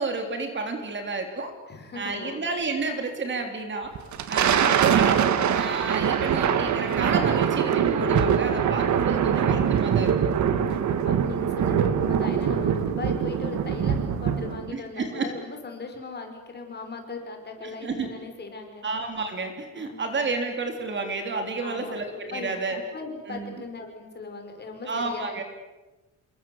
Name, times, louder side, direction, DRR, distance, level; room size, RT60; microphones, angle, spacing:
voice 1, 0.0-1.5 2.0-3.9 4.3-10.3 11.7-11.8 14.7-15.3 17.6-18.1 18.8-22.8 23.3-23.6 24.9-25.4, right 3 dB, 35° right, 5 dB, 3.5 m, -31 dB
voice 2, 1.7-2.4 9.0-9.5 10.7-18.9 19.7-20.0 21.6-22.0 22.3-25.4, left 3 dB, 30° left, 4 dB, 5.5 m, -38 dB
Thunder, 4.0-14.7, right 8 dB, 60° right, 1.8 m, -23 dB
28.0 x 23.0 x 8.0 m, 1.1 s
cardioid pair, 160°, 32 cm